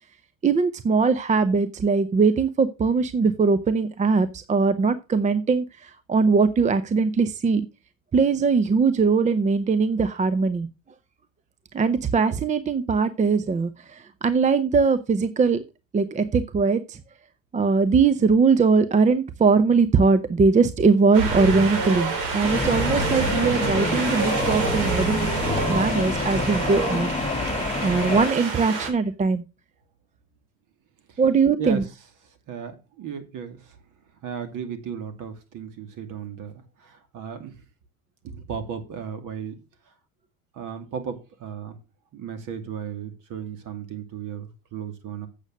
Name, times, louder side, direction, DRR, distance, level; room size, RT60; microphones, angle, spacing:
voice 1, 0.4-7.7 8.1-10.7 11.7-15.6 15.9-17.0 17.5-25.3 25.7-27.1 27.8-29.4 31.2-31.8, right 4 dB, 15° right, 13 dB, 0.7 m, -21 dB
Wind, 21.1-28.9, right 3 dB, 65° right, 3.7 m, -27 dB
sound 1, 22.4-28.3, left 3 dB, 15° left, 1.4 m, -28 dB
voice 2, 32.5-33.8 34.2-37.6 38.2-39.6 40.5-41.8 42.1-45.3, right 7 dB, 45° right, 9 dB, 2.5 m, -35 dB
8.2 x 6.6 x 6.3 m, 0.30 s
hypercardioid pair, 85°, 42 cm